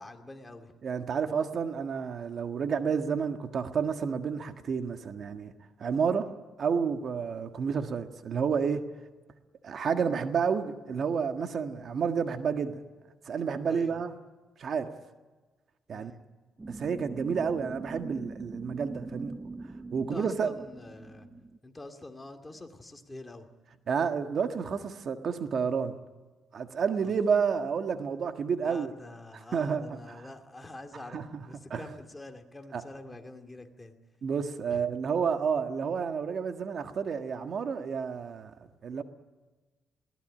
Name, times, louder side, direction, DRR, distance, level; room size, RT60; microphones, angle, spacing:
voice 1, 0.0-0.7 13.7-14.0 15.9-16.2 20.1-21.3 21.6-23.5 27.0-27.1 28.6-31.2 31.5-34.0 34.7-34.8, left 2 dB, 15° left, 5 dB, 2.5 m, -46 dB
voice 2, 0.8-5.5 5.8-6.3 6.6-8.9 9.6-12.8 13.2-14.1 14.6-14.9 15.9-16.1 16.7-19.3 19.9-20.5 23.9-26.0 26.5-28.9 29.3-30.2 31.1-31.4 31.7-31.9 32.7-32.8 34.2-39.0, right 6 dB, 55° right, 7 dB, 1.6 m, -30 dB
sound 1, 16.6-21.6, right 3 dB, 20° right, 0.7 m, -42 dB
21.5 x 18.5 x 10.0 m, 1.3 s
cardioid pair, 90°, 0 cm